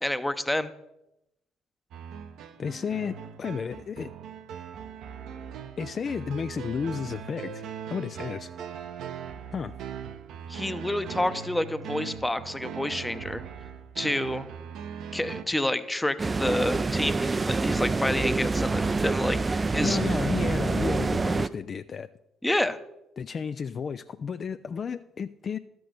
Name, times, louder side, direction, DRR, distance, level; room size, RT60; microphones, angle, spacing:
voice 1, 0.0-0.7 10.5-13.4 14.0-14.5 15.1-20.0 22.4-22.8, left 1 dB, 10° left, 0.7 m, -29 dB
sound 1, 1.9-15.4, right 8 dB, 65° right, 0.7 m, -40 dB
voice 2, 2.6-4.1 5.8-7.7 7.9-8.5 9.5-9.7 19.6-22.1 23.2-25.6, left 6 dB, 45° left, 0.3 m, -32 dB
sound 2, 16.2-21.5, right 3 dB, 30° right, 0.4 m, -26 dB
12.5 x 6.1 x 5.0 m
hypercardioid pair, 50°, 0 cm